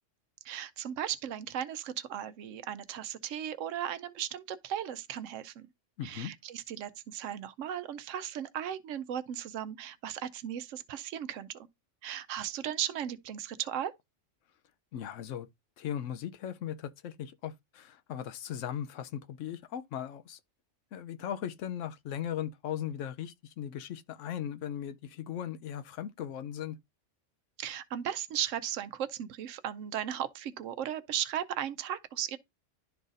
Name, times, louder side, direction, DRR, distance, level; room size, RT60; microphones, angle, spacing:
voice 1, 0.4-5.7 6.0-11.5 12.0-13.9 27.6-32.4, right 10 dB, 90° right, 1.0 m, -36 dB
voice 2, 6.0-6.3 14.9-15.5 15.8-20.4 20.9-26.8, left 10 dB, 85° left, 1.0 m, -38 dB
11.5 x 3.9 x 2.5 m
omnidirectional pair, 1.3 m